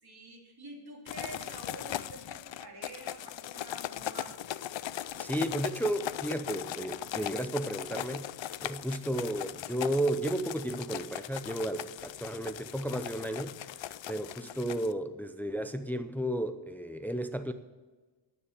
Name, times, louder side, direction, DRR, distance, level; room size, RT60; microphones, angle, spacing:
voice 1, 0.0-4.5 14.1-14.7, right 2 dB, 55° right, -1 dB, 3.1 m, -48 dB
sound 1, 1.1-14.9, left 12 dB, 80° left, 0.5 m, -39 dB
voice 2, 5.2-8.3 8.6-17.5, right 1 dB, 5° left, 9 dB, 0.7 m, -33 dB
9.8 x 9.6 x 7.2 m, 1.2 s
wide cardioid pair, 90°, 44 cm